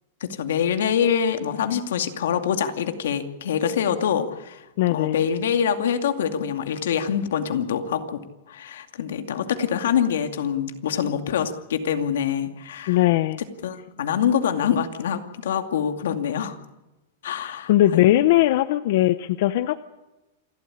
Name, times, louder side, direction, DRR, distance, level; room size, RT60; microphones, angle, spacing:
voice 1, 0.2-4.7 4.9-8.2 8.5-13.0 13.4-16.6 17.2-18.3, left 8 dB, 80° left, 7 dB, 2.4 m, -25 dB
voice 2, 4.8-5.2 12.9-13.4 17.4-19.8, left 15 dB, 45° left, 13 dB, 0.7 m, -20 dB
27.5 x 12.5 x 9.9 m, 1.0 s
supercardioid pair, 175°, 0 cm